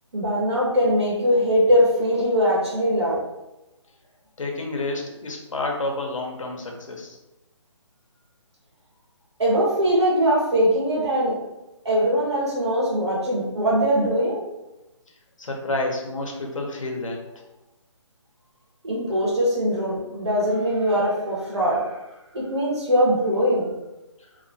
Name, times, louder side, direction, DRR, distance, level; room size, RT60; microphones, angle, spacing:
voice 1, 0.1-3.2 9.4-11.4 11.8-14.4 18.8-21.9 22.3-23.7, equal, 60° right, -5 dB, 1.3 m, -21 dB
voice 2, 4.4-7.2 15.4-17.2, left 2 dB, 85° left, 1 dB, 0.8 m, -29 dB
2.9 x 2.5 x 2.6 m, 0.98 s
hypercardioid pair, 180°, 16 cm